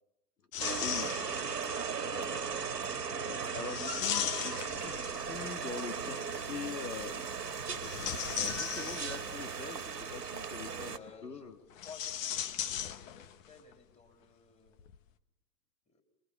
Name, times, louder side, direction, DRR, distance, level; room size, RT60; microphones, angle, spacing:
sound 1, 0.5-1.6 3.6-5.4 7.7-9.4 11.7-13.5 13.7-13.8 14.8-14.9, left 10 dB, 55° left, 1.5 m, -37 dB
sound 2, 0.6-11.0, right 6 dB, 90° right, 2.1 m, -37 dB
voice 1, 0.7-3.1 10.9-11.5 11.8-14.8 15.9-16.0, left 5 dB, 15° left, 4 dB, 3.6 m, -54 dB
voice 2, 3.2-7.2 8.3-11.0 11.2-11.6, left 6 dB, 80° left, 10 dB, 1.8 m, -43 dB
27.0 x 21.5 x 7.2 m, 0.84 s
hypercardioid pair, 105°, 47 cm